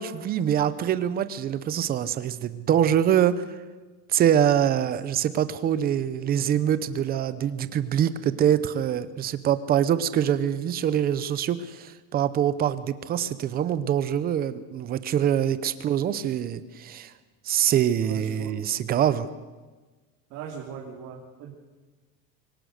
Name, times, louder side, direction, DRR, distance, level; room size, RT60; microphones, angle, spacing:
voice 1, 0.0-3.4 4.1-17.1 17.5-19.3, right 10 dB, 25° right, 14 dB, 0.7 m, -24 dB
voice 2, 18.0-18.5 20.3-21.5, right 7 dB, 45° right, -1 dB, 2.8 m, -40 dB
24.5 x 17.5 x 6.6 m, 1.3 s
cardioid pair, 175°, 37 cm